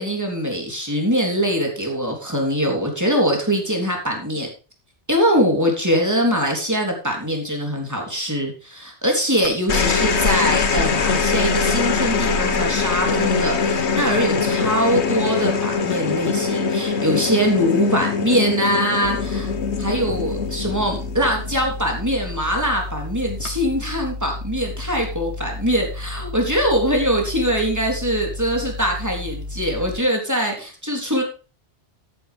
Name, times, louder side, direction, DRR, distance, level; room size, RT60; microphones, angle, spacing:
voice 1, 0.0-4.5 5.1-19.5 19.8-31.2, equal, 15° right, 1 dB, 3.5 m, -22 dB
sound 1, 9.4-22.0 23.3-23.7, left 5 dB, 70° left, 1.4 m, -22 dB
sound 2, 19.0-30.0, left 2 dB, 40° right, 3.2 m, -33 dB
13.5 x 9.6 x 3.5 m, 0.35 s
omnidirectional pair, 1.2 m